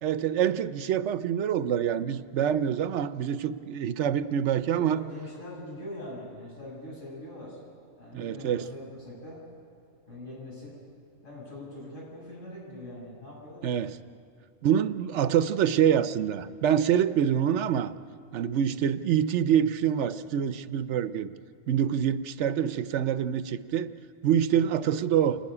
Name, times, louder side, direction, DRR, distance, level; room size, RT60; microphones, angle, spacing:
voice 1, 0.0-5.0 8.1-8.6 13.6-14.0 14.6-17.9 18.3-21.3 21.7-23.9 24.2-25.4, right 9 dB, 70° right, 13 dB, 1.0 m, -26 dB
voice 2, 4.8-7.6 8.0-9.4 10.0-10.8 11.2-13.7 24.5-24.8, left 1 dB, 90° left, -5 dB, 8.0 m, -42 dB
27.5 x 11.5 x 9.8 m, 2.3 s
omnidirectional pair, 1.3 m